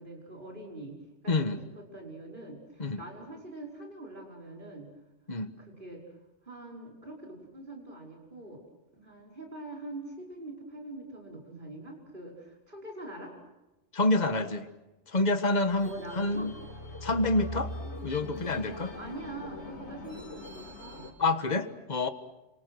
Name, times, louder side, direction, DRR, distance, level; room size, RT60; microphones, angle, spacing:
voice 1, 0.0-4.9 5.6-6.0 6.4-8.6 8.9-13.3 15.8-16.5 19.0-21.1, right 2 dB, 45° right, -1 dB, 5.8 m, -44 dB
voice 2, 1.3-1.6 2.8-3.0 5.3-5.5 13.9-14.7 15.1-16.5 17.0-17.7 18.0-18.9 21.2-22.1, left 2 dB, 40° left, 9 dB, 1.5 m, -27 dB
sound 1, 15.7-21.1, left 1 dB, 70° left, 3.8 m, -41 dB
29.5 x 26.0 x 6.3 m, 0.99 s
omnidirectional pair, 1.2 m